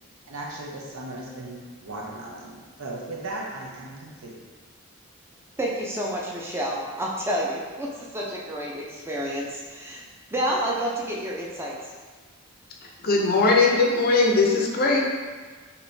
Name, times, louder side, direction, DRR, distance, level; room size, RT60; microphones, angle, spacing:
voice 1, 0.3-1.6 1.8-4.3, right 2 dB, 75° right, -3 dB, 0.8 m, -36 dB
voice 2, 5.6-10.0 10.3-11.7, equal, 10° right, -4 dB, 0.5 m, -29 dB
voice 3, 13.0-15.2, left 3 dB, 45° left, 0 dB, 0.5 m, -20 dB
5.2 x 3.0 x 2.7 m, 1.4 s
head